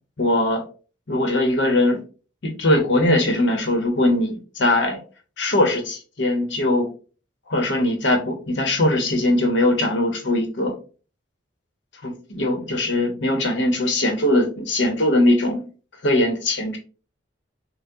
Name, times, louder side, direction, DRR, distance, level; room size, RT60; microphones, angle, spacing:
voice 1, 0.2-0.6 1.1-2.0 2.4-5.0 5.4-6.9 7.5-10.7 12.0-15.6 16.0-16.8, left 1 dB, 65° left, 4 dB, 1.0 m, -20 dB
5.8 x 2.2 x 2.8 m, 0.37 s
head